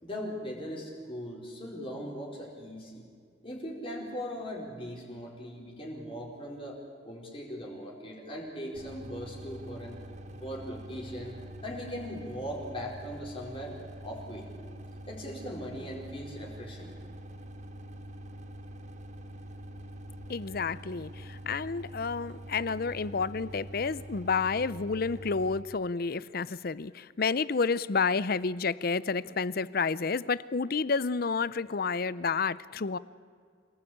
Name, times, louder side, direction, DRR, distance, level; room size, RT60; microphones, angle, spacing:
voice 1, 0.0-3.1 3.4-6.8 7.0-10.0 10.4-13.8 14.0-14.5 15.1-16.9, equal, 30° left, -2 dB, 4.5 m, -39 dB
sound 1, 8.7-25.6, right 1 dB, 40° right, 1.6 m, -45 dB
voice 2, 20.3-33.0, left 4 dB, 50° left, 18 dB, 0.6 m, -30 dB
27.0 x 17.5 x 8.7 m, 2.2 s
head